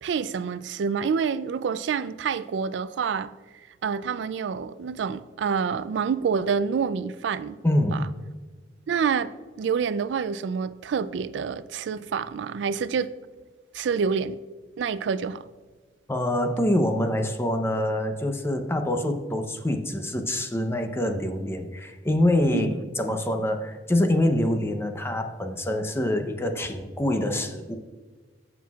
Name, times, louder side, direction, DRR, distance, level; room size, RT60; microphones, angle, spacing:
voice 1, 0.0-3.3 3.8-7.6 7.9-8.0 8.9-9.3 9.6-13.1 13.7-14.4 14.8-15.4 22.5-22.7, right 6 dB, 75° right, 0.3 m, -27 dB
voice 2, 7.6-8.0 16.1-27.8, left 1 dB, 15° left, 0.6 m, -25 dB
14.5 x 6.0 x 2.4 m
head